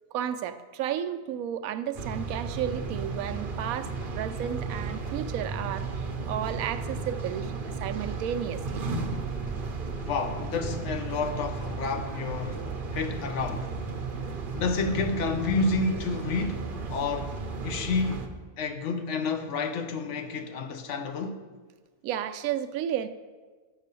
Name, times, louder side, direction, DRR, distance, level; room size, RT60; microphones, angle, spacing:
voice 1, 0.1-8.9 22.0-23.1, right 10 dB, 75° right, 1.0 m, -33 dB
sound 1, 1.9-18.3, right 4 dB, 45° right, 0.9 m, -34 dB
voice 2, 10.1-12.6 12.9-13.7 14.5-17.4 17.6-18.2 18.6-21.4, left 4 dB, 60° left, 1.0 m, -30 dB
8.2 x 6.4 x 6.8 m
omnidirectional pair, 1.6 m